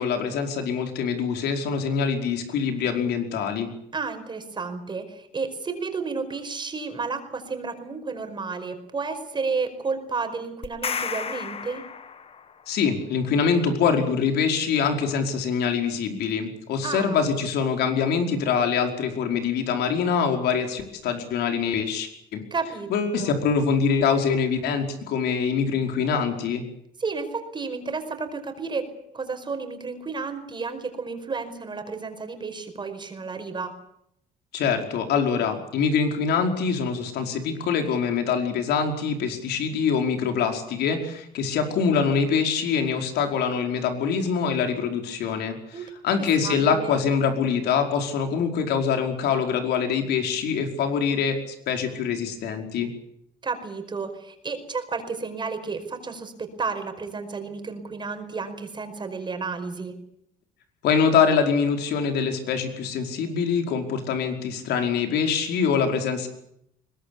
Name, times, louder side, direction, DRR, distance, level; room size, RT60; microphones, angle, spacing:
voice 1, 0.0-3.7 12.7-22.4 22.9-26.6 34.5-52.9 60.8-66.3, left 6 dB, 75° left, 5 dB, 5.0 m, -24 dB
voice 2, 3.9-11.8 16.8-17.2 22.5-22.9 23.2-23.3 27.0-33.7 45.7-45.9 46.1-47.0 53.4-60.0, right 4 dB, 25° right, 7 dB, 5.1 m, -32 dB
sound 1, 10.6-12.6, left 6 dB, 35° left, 1.6 m, -32 dB
22.5 x 20.5 x 8.6 m, 0.74 s
cardioid pair, 110°, 17 cm